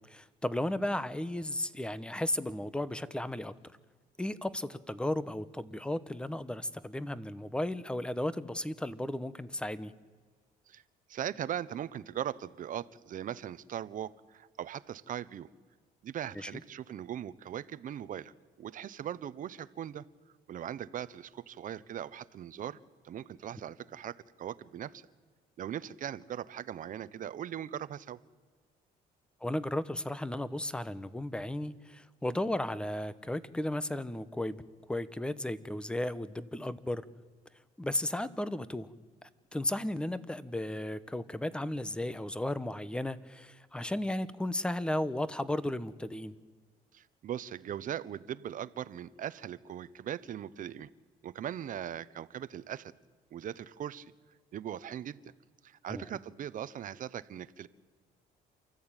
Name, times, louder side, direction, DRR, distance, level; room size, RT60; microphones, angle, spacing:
voice 1, 0.1-3.5 4.2-9.9 16.3-16.6 29.4-34.6 34.9-37.0 37.8-38.9 39.5-46.3 55.9-56.1, left 1 dB, 5° left, 15 dB, 1.0 m, -34 dB
voice 2, 11.1-15.5 16.0-18.3 18.6-20.1 20.5-22.8 23.0-25.0 25.6-28.2 46.9-50.9 51.2-52.9 53.3-54.1 54.5-55.2 55.6-57.7, right 10 dB, 50° right, 15 dB, 0.9 m, -39 dB
28.5 x 14.0 x 9.0 m, 1.5 s
cardioid pair, 110°, 17 cm